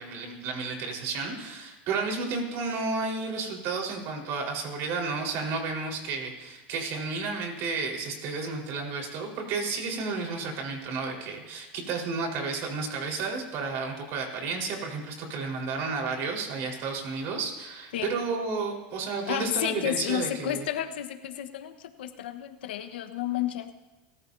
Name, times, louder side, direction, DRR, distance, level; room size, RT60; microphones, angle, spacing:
voice 1, 0.0-20.6, right 4 dB, 55° right, 1 dB, 4.5 m, -32 dB
voice 2, 19.3-23.7, left 11 dB, 90° left, 8 dB, 1.3 m, -31 dB
29.5 x 15.0 x 2.8 m, 1.1 s
supercardioid pair, 125°, 5 cm